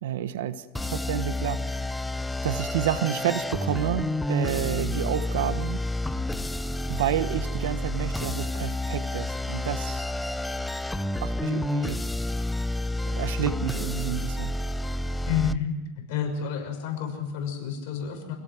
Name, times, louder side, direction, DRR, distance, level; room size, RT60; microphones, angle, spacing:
voice 1, 0.0-1.9 2.4-5.8 6.9-10.1 11.2-12.0 13.0-14.6, right 11 dB, 85° right, 11 dB, 1.3 m, -30 dB
sound 1, 0.7-15.6, left 1 dB, 5° left, 0.6 m, -30 dB
voice 2, 15.3-15.8 16.1-18.4, left 8 dB, 65° left, 4 dB, 6.3 m, -29 dB
27.5 x 17.0 x 6.2 m, 1.1 s
supercardioid pair, 140°, 0 cm